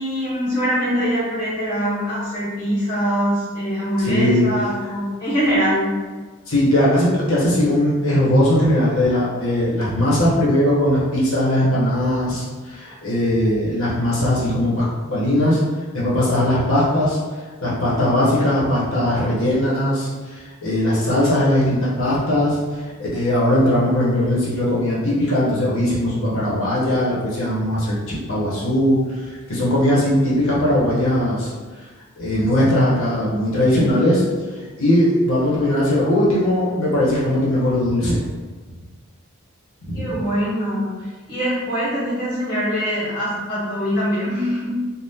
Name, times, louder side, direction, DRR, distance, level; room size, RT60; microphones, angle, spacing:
voice 1, 0.0-5.9 33.7-34.0 39.9-40.9 41.3-44.8, equal, 20° left, -14 dB, 1.0 m, -23 dB
voice 2, 4.0-4.5 4.8-4.9 6.5-15.6 15.9-17.2 17.6-31.5 32.2-34.2 34.5-38.2 39.9-40.2, left 1 dB, 70° left, -7 dB, 1.0 m, -19 dB
3.5 x 2.0 x 2.7 m, 1.4 s
head